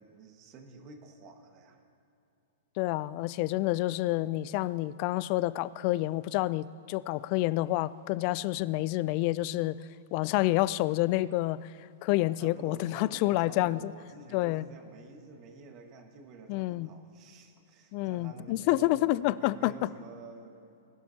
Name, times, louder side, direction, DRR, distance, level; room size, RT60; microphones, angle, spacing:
voice 1, 0.0-1.8 12.4-20.6, right 4 dB, 35° right, 4 dB, 1.6 m, -50 dB
voice 2, 2.8-9.7 10.1-11.7 12.0-13.9 14.3-14.6 16.5-16.9 17.9-19.7, left 17 dB, 45° left, 19 dB, 0.3 m, -28 dB
21.0 x 12.0 x 2.9 m, 2.8 s
hypercardioid pair, 140°, 0 cm